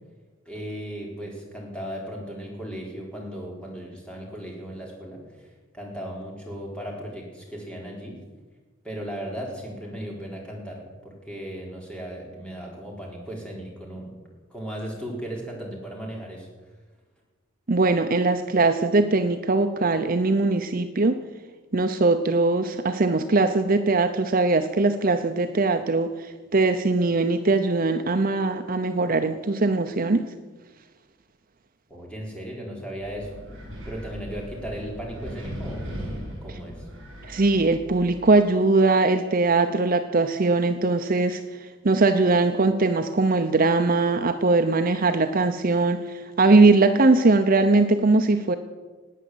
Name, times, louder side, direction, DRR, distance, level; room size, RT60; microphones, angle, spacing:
voice 1, 0.5-8.2 8.8-14.1 14.5-16.5 31.9-33.4 33.9-35.9 36.4-36.9, equal, 5° left, -2 dB, 4.0 m, -36 dB
voice 2, 17.7-21.2 21.7-30.2 37.3-48.6, right 3 dB, 45° right, 7 dB, 0.7 m, -21 dB
Wind, 33.0-38.3, equal, 65° right, 6.9 m, -38 dB
18.5 x 9.1 x 7.8 m, 1.3 s
head